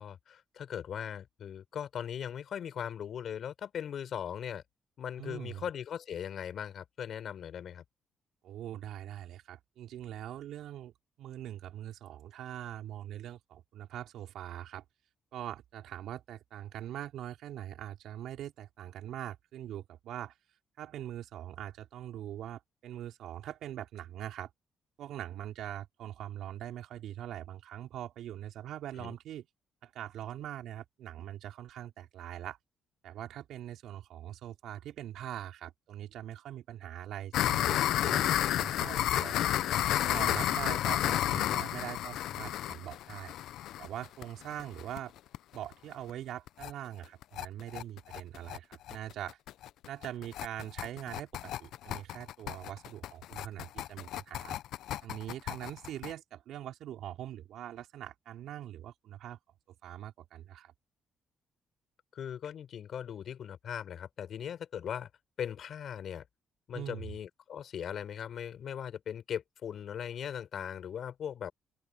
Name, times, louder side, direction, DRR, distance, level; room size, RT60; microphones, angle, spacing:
voice 1, 0.0-4.6 5.0-7.8 29.0-29.1 62.1-65.1 65.4-66.3 66.7-71.5, left 9 dB, 65° left, 4.3 m, -39 dB
voice 2, 5.2-5.6 8.4-10.9 11.2-14.8 15.3-20.3 20.8-24.5 25.0-29.5 29.8-32.6 33.0-38.3 38.6-39.5 40.0-43.3 43.8-45.1 45.5-49.4 49.9-54.6 55.0-59.4 59.7-60.7 66.7-67.1, right 12 dB, 80° right, 4.4 m, -42 dB
sound 1, 37.3-45.0 45.3-45.4 45.7-45.8 46.1-46.2 46.5-46.7 47.0-56.1, left 13 dB, 80° left, 0.4 m, -31 dB
open air
cardioid pair, 90°, 0 cm